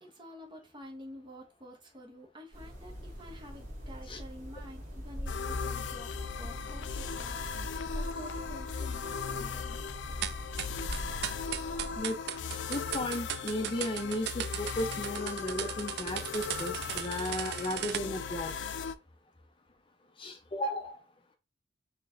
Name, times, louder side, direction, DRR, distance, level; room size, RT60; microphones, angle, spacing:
voice 1, 0.0-6.1 6.4-9.8, equal, 25° right, 1 dB, 1.3 m, -49 dB
sound 1, 2.5-12.0, equal, 45° right, 2.0 m, -42 dB
sound 2, 5.3-18.9, left 6 dB, 75° left, 0.4 m, -38 dB
sound 3, 10.2-18.0, right 12 dB, 60° right, 0.3 m, -37 dB
voice 2, 12.7-18.5 20.2-21.0, left 1 dB, 30° left, 6 dB, 0.5 m, -35 dB
4.3 x 3.2 x 3.8 m, 0.28 s
head